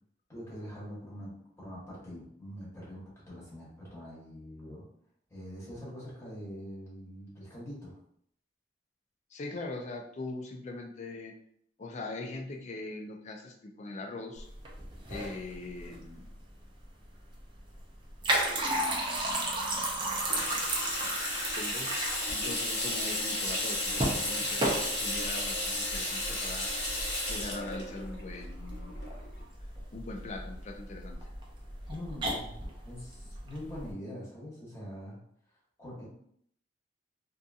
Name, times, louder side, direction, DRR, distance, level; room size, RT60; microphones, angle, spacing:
voice 1, 0.3-4.8 5.3-7.9 31.9-32.6 32.8-35.2 35.8-36.0, equal, 15° left, -7 dB, 1.0 m, -44 dB
voice 2, 9.3-11.3 11.8-14.5 15.1-16.2 21.6-28.9 29.9-31.2, left 2 dB, 40° left, 2 dB, 0.4 m, -41 dB
sound 1, 14.4-33.9, right 1 dB, 25° right, 0.5 m, -35 dB
Water tap faucet / Sink (filling or washing), 20.1-29.4, left 1 dB, 75° left, 0.9 m, -33 dB
2.6 x 2.6 x 2.3 m, 0.68 s
head